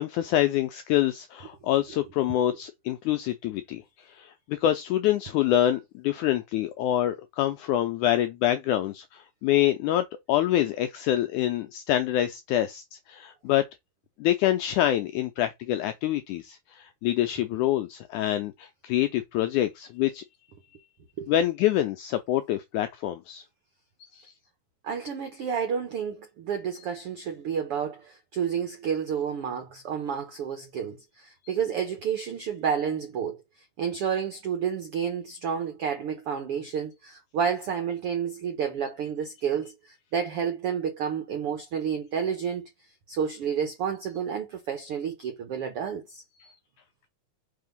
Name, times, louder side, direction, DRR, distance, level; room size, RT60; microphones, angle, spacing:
voice 1, 0.0-3.8 4.1-13.7 14.2-20.2 21.3-23.4 24.1-24.3 31.4-31.5 46.4-46.5, left 12 dB, 85° left, 1.7 m, -26 dB
voice 2, 24.8-33.4 33.8-42.7 43.1-46.2, right 7 dB, 80° right, 1.3 m, -30 dB
5.6 x 3.4 x 5.2 m
omnidirectional pair, 4.1 m